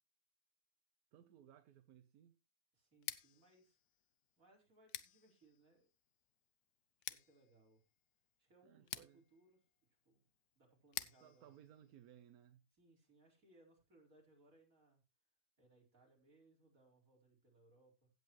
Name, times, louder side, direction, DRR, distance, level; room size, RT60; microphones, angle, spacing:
voice 1, 1.1-2.4 8.6-9.2 11.2-12.6, right 10 dB, 80° right, 1.3 m, -62 dB
voice 2, 2.7-3.8 4.4-5.9 7.1-7.8 8.4-9.6 10.0-10.2 10.5-11.8 12.8-15.0 15.6-18.1, right 2 dB, 60° right, 4.9 m, -69 dB
Scissors, 2.9-12.7, left 11 dB, 90° left, 1.3 m, -53 dB
16.5 x 8.3 x 3.1 m
omnidirectional pair, 1.6 m